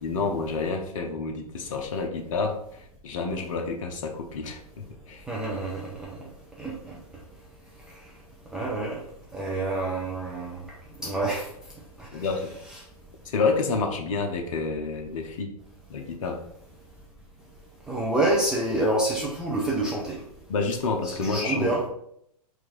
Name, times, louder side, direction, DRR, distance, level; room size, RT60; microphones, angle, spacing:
voice 1, 0.0-5.3 12.1-12.5 13.2-15.6 15.9-16.4 20.5-21.7, left 4 dB, 55° left, 3 dB, 0.7 m, -29 dB
voice 2, 5.3-6.2 6.6-7.0 8.5-9.0 9.3-10.6 11.0-11.5 12.0-12.2 17.9-20.2 21.0-21.8, right 2 dB, 5° right, -5 dB, 0.4 m, -27 dB
4.5 x 2.5 x 3.9 m, 0.72 s
figure-of-eight pair, 115°, 20 cm